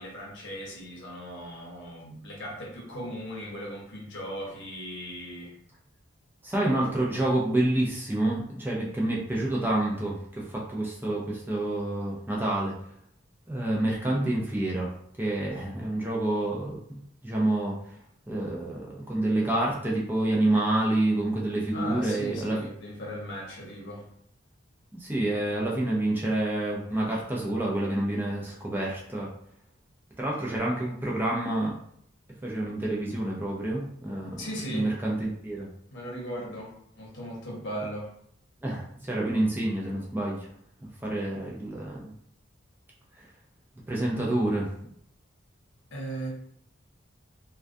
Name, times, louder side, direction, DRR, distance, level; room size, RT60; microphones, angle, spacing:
voice 1, 0.0-5.5 21.7-24.1 34.4-34.9 35.9-38.1 45.9-46.3, equal, 65° left, -3 dB, 0.8 m, -38 dB
voice 2, 6.4-12.7 13.5-17.8 18.3-22.6 24.9-29.3 30.2-31.8 32.4-35.7 38.6-40.5 41.0-42.1 43.9-44.7, right 1 dB, 10° right, -4 dB, 0.4 m, -28 dB
2.3 x 2.2 x 2.5 m, 0.67 s
head